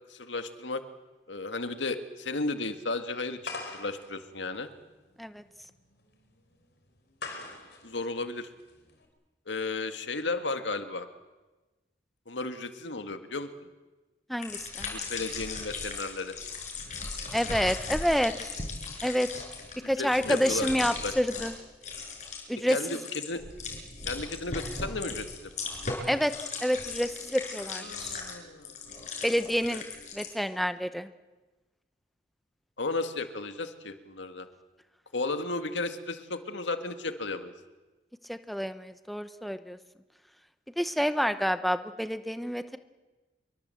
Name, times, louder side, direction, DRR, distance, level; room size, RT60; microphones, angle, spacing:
voice 1, 0.1-0.8 1.3-4.7 7.8-8.5 9.5-11.1 12.3-13.5 14.9-16.4 19.8-20.7 21.0-21.5 22.7-23.4 24.1-25.5 27.8-28.7 29.7-29.8 32.8-34.5 35.1-37.5, left 3 dB, 85° left, 8 dB, 1.9 m, -34 dB
sound 1, 3.4-9.1, left 3 dB, 60° left, 5.2 m, -44 dB
voice 2, 14.3-14.9 17.3-18.5 19.0-19.3 19.9-21.5 22.5-23.0 26.1-28.2 29.2-29.8 30.1-31.1 38.3-39.8 40.8-42.8, equal, ahead, 10 dB, 0.8 m, -28 dB
sound 2, 14.4-21.6 21.8-22.4 22.6-30.3, left 4 dB, 40° left, 6.4 m, -38 dB
27.0 x 23.0 x 7.8 m, 1.2 s
head